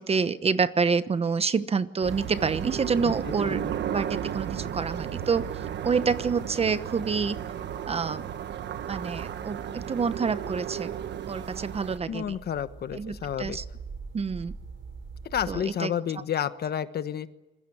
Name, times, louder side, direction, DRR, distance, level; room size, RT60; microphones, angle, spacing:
voice 1, 0.0-3.6 3.9-5.5 5.8-7.4 7.9-8.3 8.9-10.9 11.3-12.4 12.9-13.6 14.1-14.5 15.5-15.9, right 5 dB, 30° right, 13 dB, 1.0 m, -27 dB
sound 1, 2.0-12.0, right 9 dB, 60° right, 1.4 m, -34 dB
voice 2, 3.0-3.7 12.0-13.6 15.2-17.3, left 9 dB, 50° left, 12 dB, 1.3 m, -31 dB
sound 2, 9.0-15.6, right 5 dB, 75° right, 7.8 m, -46 dB
26.0 x 22.0 x 8.7 m, 1.1 s
cardioid pair, 120°, 20 cm